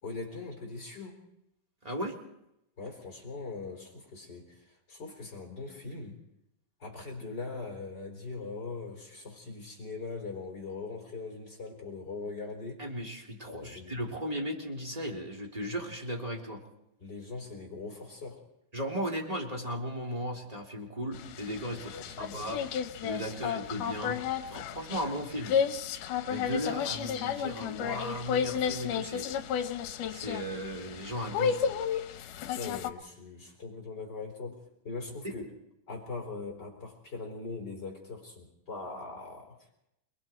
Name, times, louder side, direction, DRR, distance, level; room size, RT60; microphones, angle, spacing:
voice 1, 0.0-1.2 2.8-6.2 6.8-12.8 13.5-14.0 17.0-18.4 21.9-22.5 23.2-23.4 23.7-24.0 32.5-35.5 35.9-39.5, left 3 dB, 30° left, 2 dB, 4.6 m, -41 dB
voice 2, 1.8-2.1 12.8-16.6 18.7-22.6 23.0-25.5 26.3-29.3 30.1-31.7 35.2-35.3, equal, 10° right, 0 dB, 3.2 m, -36 dB
sound 1, 21.1-32.9, left 7 dB, 75° left, 2.6 m, -33 dB
30.0 x 21.0 x 4.6 m, 0.83 s
omnidirectional pair, 3.8 m